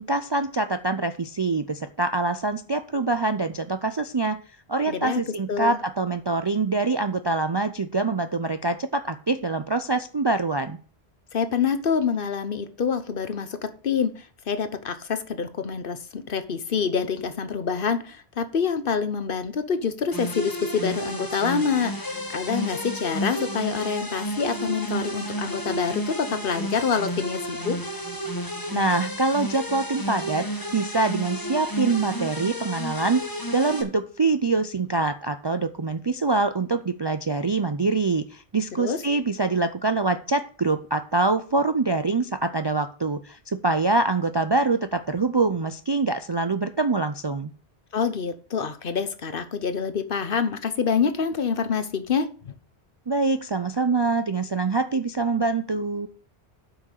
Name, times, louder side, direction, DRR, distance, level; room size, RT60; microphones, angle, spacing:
voice 1, 0.0-4.4 4.7-10.8 28.7-30.5 30.7-47.5 53.1-56.1, right 3 dB, 35° right, 9 dB, 0.4 m, -25 dB
voice 2, 4.9-5.2 5.5-5.8 11.3-27.8 38.8-39.0 47.9-52.5, left 6 dB, 55° left, 11 dB, 1.0 m, -26 dB
sound 1, 20.1-33.8, equal, 20° left, 1.4 m, -31 dB
8.5 x 6.1 x 6.6 m, 0.40 s
omnidirectional pair, 1.1 m